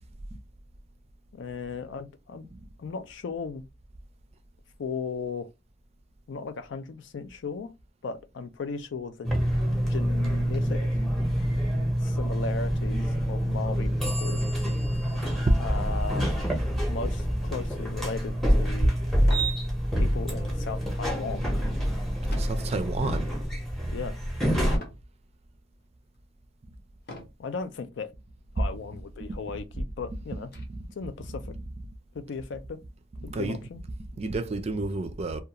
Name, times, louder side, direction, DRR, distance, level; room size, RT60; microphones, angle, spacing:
voice 1, 1.3-2.5 2.8-3.6 4.8-5.5 6.3-7.7 8.0-9.3 9.9-11.0 12.0-14.4 15.6-16.3 16.9-18.9 20.0-21.5 23.9-24.2 27.4-28.1 28.6-30.5 30.9-31.5 32.1-32.8 33.2-33.8, left 4 dB, 75° left, 0.4 m, -36 dB
sound 1, 9.2-24.8, equal, ahead, 0.6 m, -27 dB
sound 2, 19.3-19.6 20.1-20.4 22.3-22.7 23.3-23.7 24.7-25.1 25.8-25.9 27.0-27.5 28.5-28.6 29.0-29.1 29.5-30.6, left 1 dB, 55° left, 0.8 m, -44 dB
voice 2, 22.4-23.3 28.6-28.7 30.7-30.8 33.2-33.6 34.0-35.4, right 2 dB, 35° right, 0.4 m, -29 dB
2.4 x 2.3 x 2.8 m
head